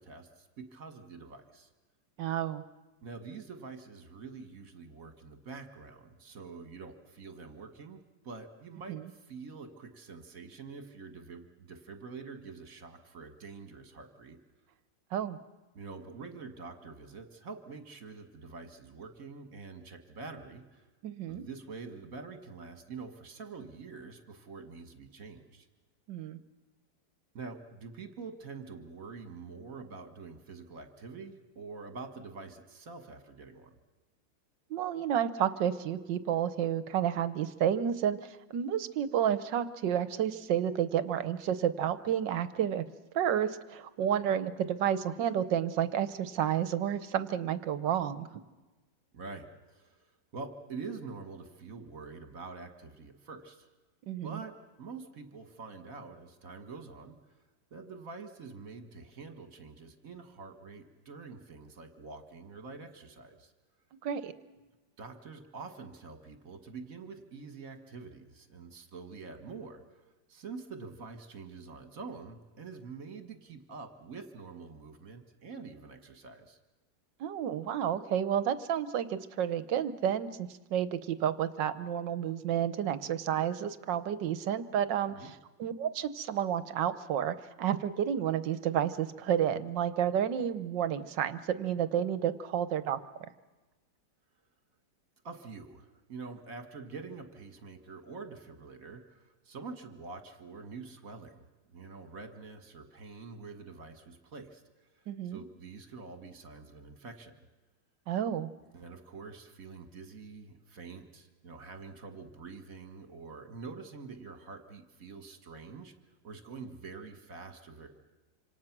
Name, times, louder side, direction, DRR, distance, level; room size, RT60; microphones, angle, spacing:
voice 1, 0.0-1.7 3.0-14.4 15.7-20.9 21.3-25.7 27.3-33.7 49.1-53.7 54.2-54.5 54.8-57.1 57.7-63.5 65.0-70.0 70.3-76.6 85.2-85.3 95.2-104.6 104.9-107.3 108.7-115.9 116.2-117.9, right 4 dB, 45° right, 7 dB, 2.0 m, -46 dB
voice 2, 2.2-2.6 8.9-9.0 15.1-15.4 21.0-21.4 26.1-26.4 34.7-42.8 43.1-48.3 54.0-54.4 64.0-64.3 77.2-93.0 105.1-105.4 108.1-108.5, right 9 dB, 75° right, 13 dB, 1.6 m, -31 dB
26.5 x 26.5 x 6.1 m, 1.2 s
omnidirectional pair, 2.0 m